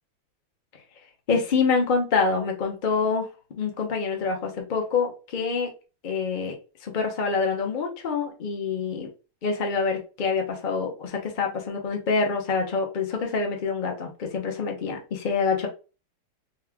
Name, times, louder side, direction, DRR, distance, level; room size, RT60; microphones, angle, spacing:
voice 1, 1.3-5.7 6.0-6.5 6.8-9.1 9.4-15.7, left 4 dB, 65° left, 2 dB, 0.4 m, -26 dB
4.2 x 2.3 x 3.5 m, 0.33 s
omnidirectional pair, 2.4 m